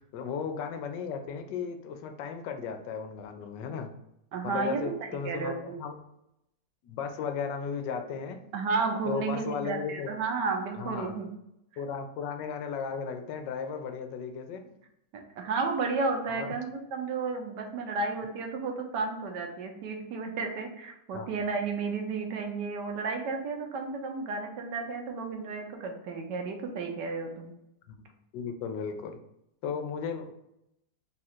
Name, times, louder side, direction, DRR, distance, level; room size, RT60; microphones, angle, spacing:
voice 1, 0.0-3.9 4.4-6.0 6.8-8.4 9.1-10.2 10.8-11.2 11.8-14.7 16.3-16.5 21.1-21.3 27.9-29.2 29.6-30.3, left 6 dB, 85° left, 6 dB, 1.2 m, -35 dB
voice 2, 4.3-5.5 8.5-11.3 15.1-27.5 29.7-29.8, right 4 dB, 80° right, 3 dB, 1.3 m, -32 dB
3.8 x 2.4 x 4.3 m, 0.81 s
omnidirectional pair, 1.9 m